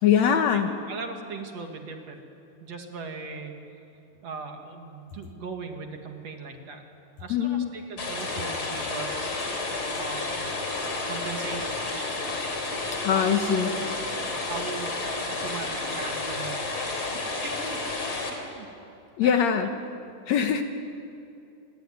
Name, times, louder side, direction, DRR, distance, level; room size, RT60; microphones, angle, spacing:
voice 1, 0.0-0.7 7.3-7.7 13.0-13.7 19.2-19.7 20.3-20.6, left 8 dB, 65° left, 7 dB, 2.0 m, -22 dB
voice 2, 0.9-2.2 2.6-3.5 4.2-6.8 7.2-9.3 10.0-10.4 11.1-12.3 13.1-13.8 14.1-15.0 15.3-16.7 17.1-18.7 19.2-19.7, right 4 dB, 55° right, 4 dB, 2.8 m, -38 dB
sound 1, 8.0-18.3, left 3 dB, 40° left, 4.0 m, -31 dB
26.0 x 21.0 x 9.5 m, 2.6 s
omnidirectional pair, 3.8 m